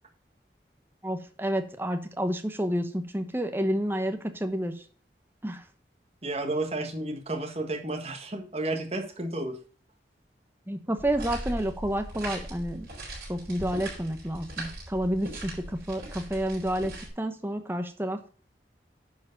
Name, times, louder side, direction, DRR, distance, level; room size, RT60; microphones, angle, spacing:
voice 1, 1.0-4.8 5.4-5.6 10.7-12.9 13.3-18.3, right 1 dB, 10° right, 7 dB, 1.0 m, -30 dB
voice 2, 6.2-9.6, right 2 dB, 35° right, 3 dB, 1.6 m, -32 dB
sound 1, 11.0-17.1, right 1 dB, 55° right, 5.5 m, -39 dB
10.5 x 4.8 x 5.3 m, 0.41 s
head